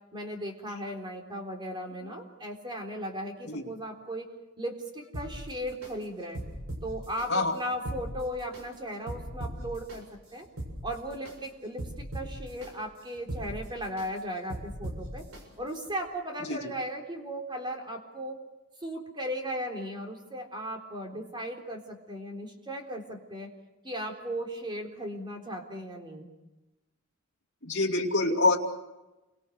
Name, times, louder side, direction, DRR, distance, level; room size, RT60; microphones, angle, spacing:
voice 1, 0.1-4.3 4.6-6.4 6.8-10.0 10.3-10.5 10.8-15.2 15.6-18.4 18.8-23.5 23.8-26.3, equal, 20° right, 2 dB, 3.9 m, -36 dB
sound 1, 5.1-5.9 6.3-7.3 7.7-8.6 9.1-10.0 10.4-11.3 11.8-12.7 13.1-14.1 14.5-15.4 15.9-16.0, right 1 dB, 65° right, 6.9 m, -39 dB
voice 2, 27.6-28.6, left 2 dB, 55° left, -1 dB, 2.6 m, -25 dB
29.0 x 24.5 x 6.4 m, 1.1 s
head